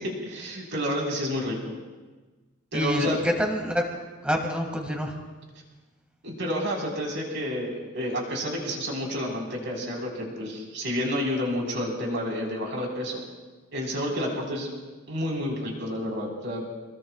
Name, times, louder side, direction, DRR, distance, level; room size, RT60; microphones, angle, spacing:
voice 1, 0.0-1.6 2.7-3.2 6.2-13.2 13.7-14.7 15.1-16.6, equal, 55° right, -2 dB, 4.7 m, -30 dB
voice 2, 2.7-3.8 4.2-5.1, equal, 5° right, 2 dB, 2.2 m, -26 dB
28.5 x 20.0 x 2.5 m, 1.3 s
head